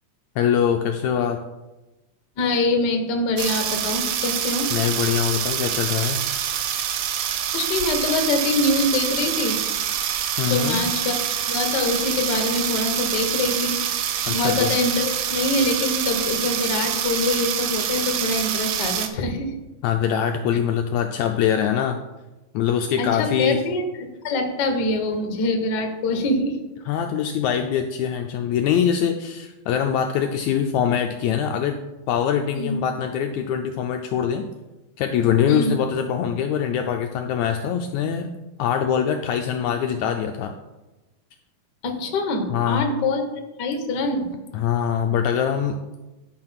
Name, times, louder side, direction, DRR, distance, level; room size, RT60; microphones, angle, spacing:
voice 1, 0.4-1.4 4.7-6.2 10.4-10.8 14.3-14.7 19.8-22.0 22.5-23.6 26.9-31.8 32.1-34.5 35.0-38.3 38.6-40.5 42.5-42.9 44.5-46.0, left 8 dB, 80° left, 5 dB, 1.7 m, -23 dB
voice 2, 2.4-4.7 7.5-9.6 10.5-11.2 11.5-13.8 14.3-19.6 23.0-23.8 24.2-26.6 32.6-32.8 35.5-35.7 41.8-44.3, left 2 dB, 55° left, 4 dB, 1.2 m, -24 dB
sound 1, 3.4-19.1, right 9 dB, 80° right, 2.2 m, -26 dB
10.5 x 4.3 x 5.7 m, 1.1 s
omnidirectional pair, 3.6 m